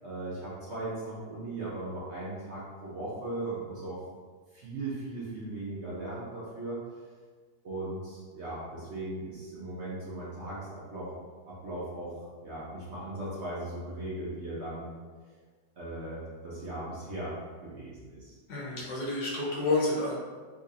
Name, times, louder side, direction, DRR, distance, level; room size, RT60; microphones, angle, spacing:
voice 1, 0.0-4.0 4.5-6.8 7.6-11.2 11.5-14.9 15.8-18.4, right 2 dB, 55° right, -8 dB, 0.9 m, -38 dB
voice 2, 18.5-20.2, left 2 dB, 75° left, -5 dB, 1.4 m, -29 dB
4.0 x 2.8 x 2.5 m, 1.5 s
omnidirectional pair, 1.8 m